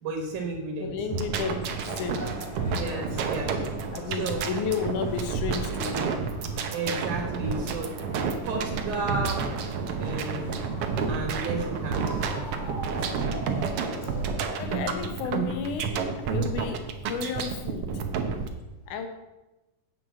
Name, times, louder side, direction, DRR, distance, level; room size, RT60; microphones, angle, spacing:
voice 1, 0.0-0.9 2.7-3.6 4.1-4.4 6.7-7.9 8.4-9.4 10.0-10.7 11.1-12.2, right 3 dB, 70° right, 0 dB, 2.7 m, -32 dB
voice 2, 0.8-3.4 3.9-6.1 14.6-17.9 18.9-19.1, left 6 dB, 70° left, 6 dB, 2.4 m, -33 dB
sound 1, 1.1-18.5, right 5 dB, 90° right, 1.2 m, -30 dB
sound 2, 1.9-14.4, equal, 25° left, 0.9 m, -41 dB
8.5 x 6.3 x 7.5 m, 1.0 s
omnidirectional pair, 3.9 m